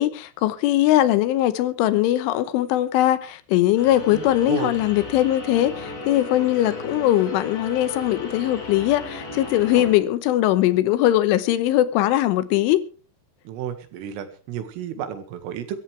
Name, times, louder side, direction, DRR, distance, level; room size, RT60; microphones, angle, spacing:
voice 1, 0.0-12.8, left 14 dB, 80° left, 3.3 m, -20 dB
sound 1, 3.8-9.9, left 2 dB, 60° left, 8.0 m, -35 dB
voice 2, 4.1-4.8 9.7-9.9 13.5-15.8, right 9 dB, 80° right, 4.5 m, -32 dB
23.5 x 14.0 x 3.3 m
omnidirectional pair, 5.8 m